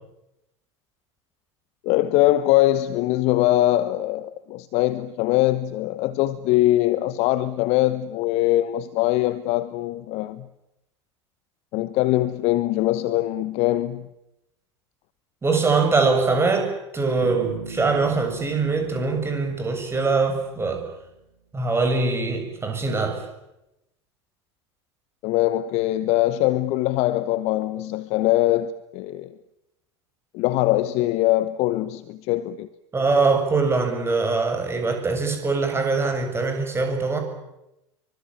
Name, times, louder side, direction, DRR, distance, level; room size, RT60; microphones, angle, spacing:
voice 1, 1.8-10.5 11.7-14.1 25.2-29.3 30.3-32.7, left 15 dB, 45° left, 1.1 m, -22 dB
voice 2, 15.4-20.8 21.5-23.2 32.9-37.2, right 4 dB, 15° right, 6.9 m, -22 dB
Bass guitar, 17.2-21.0, right 5 dB, 75° right, 3.2 m, -40 dB
25.5 x 24.5 x 8.9 m
figure-of-eight pair, 80°, 15 cm